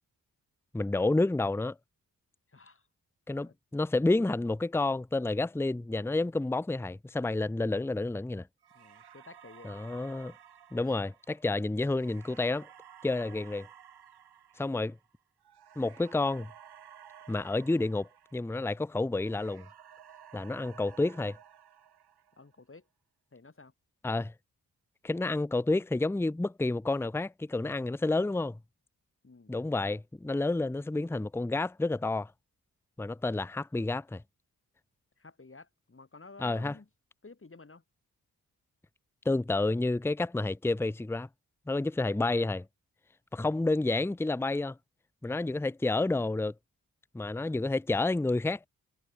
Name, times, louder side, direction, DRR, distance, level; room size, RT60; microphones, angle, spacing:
voice 1, 0.7-1.8 3.3-8.5 9.6-10.3 10.7-12.7 13.0-13.7 14.6-15.0 15.8-16.5 17.3-19.7 20.3-21.4 24.0-24.3 25.0-28.6 29.5-32.3 33.0-34.2 36.4-36.7 39.3-41.3 41.7-42.6 43.3-44.8 45.2-46.5 47.1-48.7, left 2 dB, 5° left, 0.7 m, -30 dB
voice 2, 2.5-2.9 3.4-3.6 8.7-9.7 10.9-11.0 13.1-13.5 22.4-22.9 23.3-23.7 29.2-29.6 35.2-36.9 37.2-37.8 41.8-42.5, left 3 dB, 35° left, 3.8 m, -53 dB
sound 1, 8.6-18.8 19.1-22.6, right 9 dB, 80° right, 5.8 m, -54 dB
supercardioid pair, 40°, 38 cm